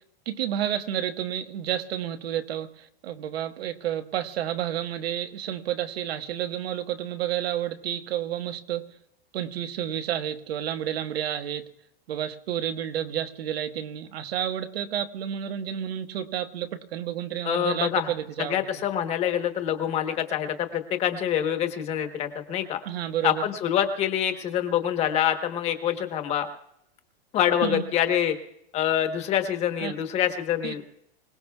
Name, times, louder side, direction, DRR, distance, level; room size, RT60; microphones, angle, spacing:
voice 1, 0.2-8.9 9.3-11.7 12.1-18.6 22.8-23.4 27.6-27.8 29.8-29.9 30.6-30.7, right 10 dB, 85° right, 1.4 m, -30 dB
voice 2, 17.4-18.1 18.5-22.8 23.2-26.5 27.3-28.4 28.7-30.8, left 10 dB, 20° left, 1.1 m, -26 dB
26.0 x 18.5 x 2.3 m
supercardioid pair, 170°, 30 cm